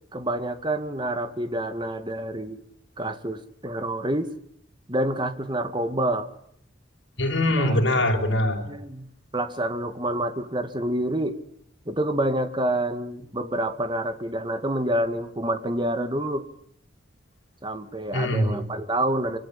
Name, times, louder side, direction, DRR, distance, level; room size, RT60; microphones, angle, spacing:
voice 1, 0.1-2.6 3.0-4.3 4.9-6.3 7.6-7.8 8.7-11.4 11.9-16.5 17.6-19.4, right 1 dB, 25° right, 9 dB, 2.2 m, -28 dB
voice 2, 7.2-8.7 18.1-18.7, left 1 dB, 75° left, 2 dB, 5.5 m, -23 dB
25.5 x 24.5 x 8.8 m, 0.67 s
head